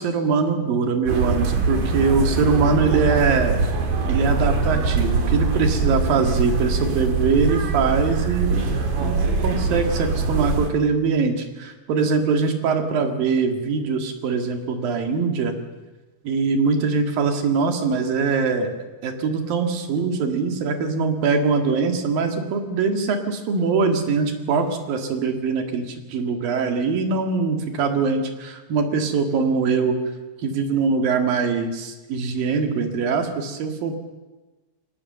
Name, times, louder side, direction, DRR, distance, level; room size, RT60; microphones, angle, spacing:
voice 1, 0.0-3.6 4.1-9.2 9.4-15.6 16.3-18.7 19.0-30.0 30.4-33.9, right 5 dB, 90° right, 5 dB, 3.9 m, -22 dB
sound 1, 1.1-10.7, right 4 dB, 70° right, 4.2 m, -23 dB
25.0 x 17.5 x 7.7 m, 1.2 s
omnidirectional pair, 3.9 m